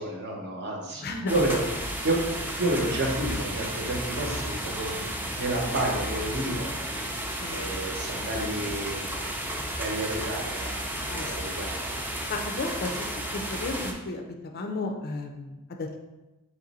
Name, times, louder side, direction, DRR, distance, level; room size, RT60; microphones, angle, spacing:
voice 1, 0.0-1.0 1.3-1.6 2.0-5.0 5.4-6.7 7.5-9.1 9.8-10.7 11.0-11.7, right 1 dB, 50° right, 0 dB, 0.9 m, -30 dB
voice 2, 1.0-1.6 7.4-7.7 11.1-11.5 12.3-16.0, left 2 dB, 45° left, 3 dB, 0.5 m, -34 dB
sound 1, 1.3-13.9, right 1 dB, 10° right, 0.4 m, -33 dB
3.9 x 3.0 x 4.1 m, 1.1 s
head